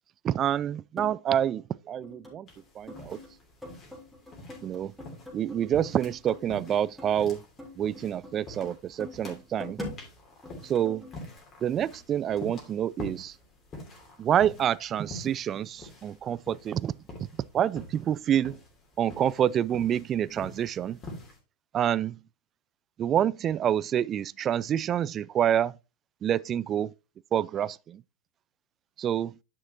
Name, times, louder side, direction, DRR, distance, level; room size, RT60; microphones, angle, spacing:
voice 1, 0.2-2.5 2.8-3.2 4.6-4.9 5.3-7.4 7.8-9.8 10.6-11.0 11.6-13.3 14.2-16.9 17.5-18.6 19.0-21.0 21.7-22.2 23.0-25.7 26.2-26.9 27.3-28.0 29.0-29.3, right 10 dB, 30° right, 0.3 m, -27 dB
sound 1, 1.0-1.2 2.0-2.6 2.9-3.3 3.6-7.3 7.6-10.0 10.4-11.3, left 1 dB, ahead, 3.6 m, -43 dB
sound 2, 2.5-21.4, left 1 dB, 25° left, 2.9 m, -46 dB
10.5 x 6.1 x 2.8 m
figure-of-eight pair, 90°, 0 cm